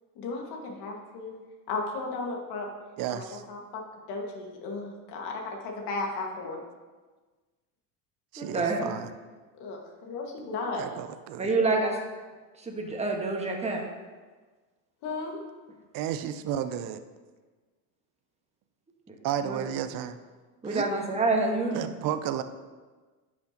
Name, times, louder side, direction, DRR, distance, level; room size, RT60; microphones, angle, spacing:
voice 1, 0.2-1.3 1.7-2.7 3.1-3.8 4.1-6.6 9.6-10.8 15.0-15.4, left 3 dB, 60° left, 0 dB, 1.9 m, -35 dB
voice 2, 3.0-3.4 8.3-9.1 10.7-11.5 15.9-17.0 19.2-20.2 20.6-20.8 21.7-22.4, right 10 dB, 50° right, 11 dB, 0.6 m, -32 dB
voice 3, 8.4-9.0 11.4-12.0 12.6-13.8 19.1-19.2 19.4-19.6 20.6-21.9, right 3 dB, 15° right, 1 dB, 1.4 m, -27 dB
10.0 x 6.2 x 2.9 m, 1.3 s
supercardioid pair, 100°, 44 cm